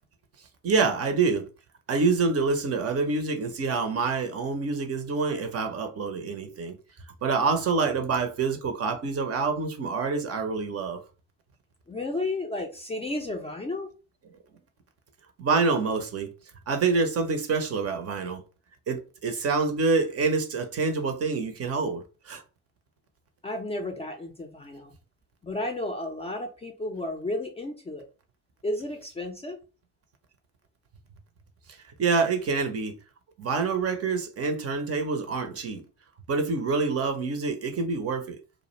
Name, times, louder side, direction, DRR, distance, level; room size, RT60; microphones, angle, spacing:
voice 1, 0.6-1.5 1.9-6.8 7.2-11.0 15.4-16.3 16.7-18.4 18.9-22.4 31.7-33.0 33.4-35.8 36.3-38.4, right 4 dB, 35° right, 0.6 m, -26 dB
voice 2, 11.9-13.9 23.4-24.9 25.4-28.1 28.6-29.6, left 2 dB, 15° left, 0.4 m, -32 dB
2.4 x 2.0 x 2.9 m
hypercardioid pair, 65°, 44 cm